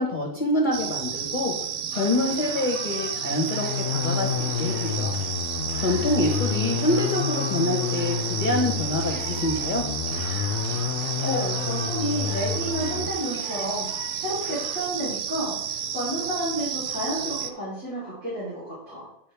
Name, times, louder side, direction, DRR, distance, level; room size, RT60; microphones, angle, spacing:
voice 1, 0.0-1.5 1.9-5.2 5.8-9.8, left 2 dB, 40° left, 0 dB, 1.1 m, -26 dB
sound 1, 0.7-17.5, right 8 dB, 80° right, 0.4 m, -32 dB
sound 2, 1.9-14.8, left 1 dB, 15° left, 1.3 m, -43 dB
sound 3, 3.1-13.1, left 8 dB, 70° left, 0.9 m, -30 dB
voice 2, 11.2-19.1, equal, 60° right, -11 dB, 3.9 m, -31 dB
9.6 x 5.4 x 3.4 m, 0.79 s
omnidirectional pair, 1.4 m